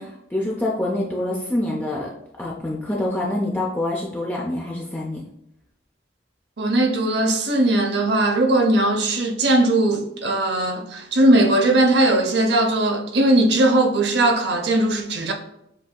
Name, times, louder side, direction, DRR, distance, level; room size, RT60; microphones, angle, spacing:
voice 1, 0.0-2.1 2.4-5.2, left 1 dB, 10° left, 0.5 m, -26 dB
voice 2, 6.6-15.3, right 1 dB, 60° right, 0.7 m, -19 dB
7.4 x 2.7 x 2.3 m
head